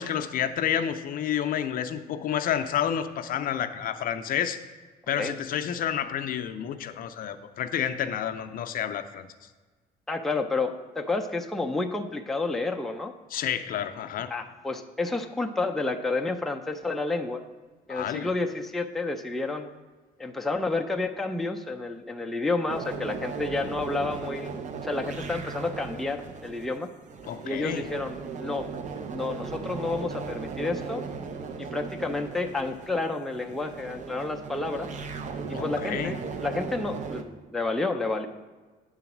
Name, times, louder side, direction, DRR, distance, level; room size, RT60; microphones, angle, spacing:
voice 1, 0.0-4.6 5.1-9.3 13.3-14.3 17.9-18.3 27.3-27.9 35.5-36.2, left 9 dB, 55° left, 8 dB, 0.5 m, -30 dB
voice 2, 10.1-13.1 14.3-17.4 17.9-19.7 20.2-24.5 24.8-26.9 27.4-28.7 29.1-31.0 31.6-34.9 35.5-38.3, left 3 dB, ahead, 3 dB, 0.4 m, -30 dB
sound 1, 22.7-37.2, right 5 dB, 45° right, 0.6 m, -37 dB
8.4 x 3.9 x 5.9 m, 1.4 s
cardioid pair, 110°, 17 cm